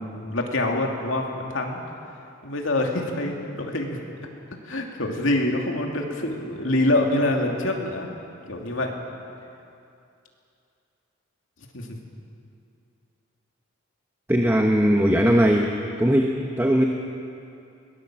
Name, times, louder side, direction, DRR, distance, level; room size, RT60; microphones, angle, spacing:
voice 1, 0.0-1.8 2.4-4.0 4.6-8.1 8.5-8.9 11.7-12.0, left 1 dB, 70° left, 1 dB, 2.7 m, -25 dB
voice 2, 14.3-15.7 16.0-16.8, equal, 10° right, 1 dB, 1.0 m, -19 dB
22.0 x 19.0 x 7.6 m, 2.6 s
head